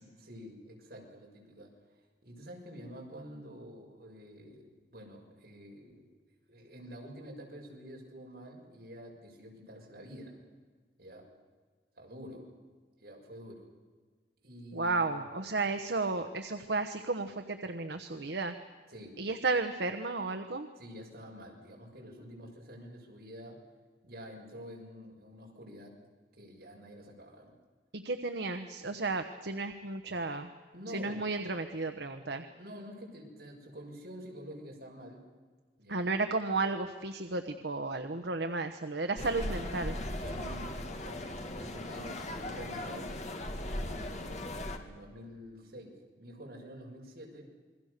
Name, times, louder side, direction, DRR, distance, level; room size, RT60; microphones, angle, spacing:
voice 1, 0.0-1.7 2.2-6.1 6.5-10.4 11.0-11.2 12.0-12.5 13.0-13.7 14.4-15.5 18.9-19.2 20.8-23.6 24.0-25.9 26.4-27.5 30.7-31.2 32.5-35.2 35.8-36.1 40.2-41.2 41.6-43.1 43.9-47.5, equal, 60° right, -1 dB, 6.7 m, -48 dB
voice 2, 14.7-18.5 19.2-20.7 27.9-30.5 30.9-32.4 35.9-40.0, right 3 dB, 80° right, 8 dB, 1.2 m, -33 dB
sound 1, 39.2-44.8, left 1 dB, 40° left, 2.3 m, -38 dB
28.5 x 22.0 x 6.8 m, 1.5 s
head